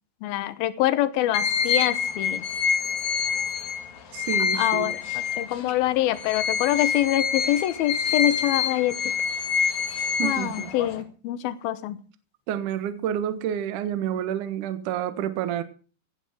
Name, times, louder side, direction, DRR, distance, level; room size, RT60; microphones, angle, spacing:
voice 1, 0.2-2.4 4.5-9.1 10.2-12.0, left 13 dB, 75° left, 2.3 m, -25 dB
sound 1, 1.3-5.7 6.1-11.0, left 6 dB, 55° left, 2.3 m, -26 dB
voice 2, 4.1-4.9 10.2-10.7 12.5-15.6, right 10 dB, 65° right, 2.1 m, -29 dB
16.5 x 9.4 x 6.1 m
omnidirectional pair, 5.6 m